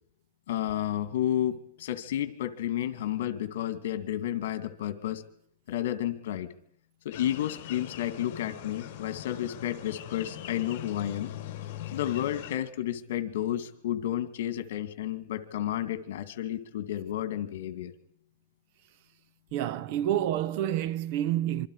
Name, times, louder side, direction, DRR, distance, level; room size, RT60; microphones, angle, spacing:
voice 1, 0.5-5.2 5.7-6.5 7.0-11.3 11.9-17.9, left 12 dB, 65° left, 2.4 m, -31 dB
sound 1, 7.1-12.6, left 12 dB, 45° left, 4.0 m, -41 dB
voice 2, 19.5-21.7, right 12 dB, 45° right, 0.9 m, -28 dB
26.5 x 25.0 x 5.0 m
supercardioid pair, 160°, 0 cm